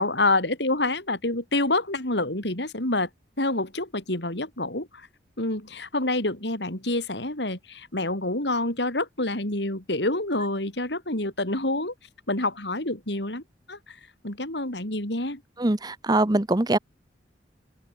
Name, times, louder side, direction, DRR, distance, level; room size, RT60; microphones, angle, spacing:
voice 1, 0.0-3.1 3.4-5.1 5.4-11.9 12.3-13.4 13.7-14.0 14.2-15.4, left 2 dB, 75° left, 5.7 m, -27 dB
voice 2, 15.6-16.8, right 2 dB, 25° right, 0.9 m, -22 dB
open air
head